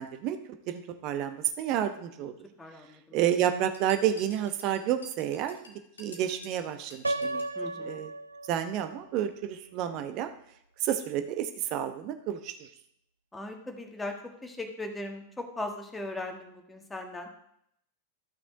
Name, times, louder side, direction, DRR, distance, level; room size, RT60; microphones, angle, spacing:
voice 1, 0.0-2.4 3.1-5.6 6.0-7.4 7.8-8.1 8.5-10.3 10.8-12.7, right 10 dB, 40° right, 8 dB, 0.9 m, -30 dB
voice 2, 2.6-3.2 7.5-8.0 13.3-17.3, left 2 dB, 10° left, 3 dB, 1.5 m, -38 dB
sound 1, 3.7-7.6, left 2 dB, 70° left, 1.5 m, -51 dB
Piano, 7.0-9.0, right 2 dB, 80° right, 0.3 m, -34 dB
13.0 x 6.0 x 3.9 m, 0.74 s
figure-of-eight pair, 90°, 0 cm